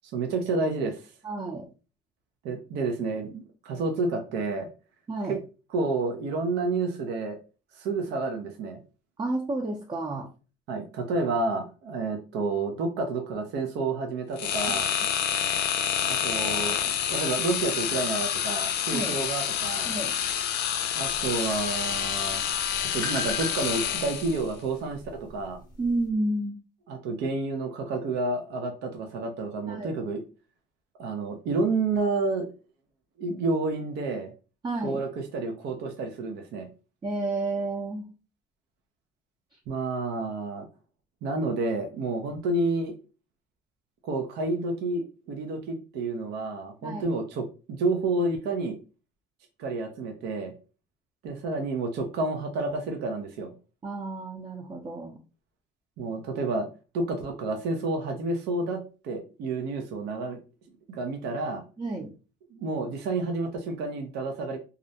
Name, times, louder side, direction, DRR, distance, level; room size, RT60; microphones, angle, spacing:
voice 1, 0.1-1.0 2.4-4.7 5.3-5.4 5.7-7.4 7.8-8.8 10.7-14.9 16.0-16.8 17.1-19.9 20.9-22.4 22.9-25.6 26.9-30.2 31.0-32.5 33.2-34.3 34.8-36.7 39.7-40.7 41.2-43.0 44.0-48.8 49.6-50.5 51.2-53.5 56.0-56.7 56.9-60.4 60.9-61.6 62.5-64.6, right 3 dB, 80° right, 4 dB, 0.5 m, -30 dB
voice 2, 1.2-1.7 5.1-5.4 9.2-10.3 18.9-19.2 19.8-20.1 25.8-26.6 29.7-29.9 34.6-35.0 37.0-38.1 46.8-47.1 53.8-55.2 61.8-62.1, right 2 dB, 25° right, 1 dB, 0.5 m, -31 dB
sound 1, 14.4-24.5, left 9 dB, 80° left, 0.4 m, -28 dB
sound 2, 21.0-26.1, left 1 dB, 25° left, 0.7 m, -42 dB
2.4 x 2.1 x 2.6 m, 0.33 s
cardioid pair, 110°, 17 cm